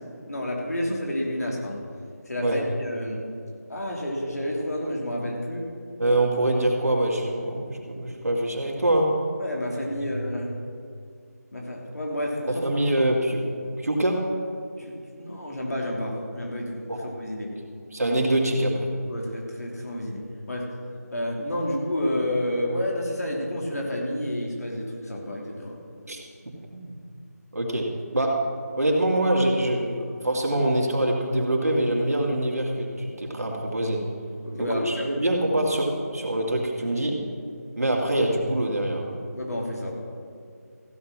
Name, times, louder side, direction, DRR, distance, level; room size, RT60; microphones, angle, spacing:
voice 1, 0.3-1.8 2.3-3.2 3.7-5.7 9.4-10.5 11.5-12.6 14.8-16.8 17.1-17.5 19.1-20.2 20.5-20.7 21.1-25.7 34.4-35.2 39.3-39.9, left 1 dB, 65° left, -2 dB, 3.0 m, -30 dB
voice 2, 6.0-9.2 9.9-10.2 12.5-13.5 13.8-14.3 16.9-17.0 17.9-18.9 26.1-26.2 26.4-27.0 27.5-28.5 28.8-34.0 34.6-37.2 37.8-39.1, right 1 dB, 65° right, -1 dB, 2.4 m, -24 dB
15.0 x 6.7 x 6.1 m, 2.3 s
figure-of-eight pair, 170°, 9 cm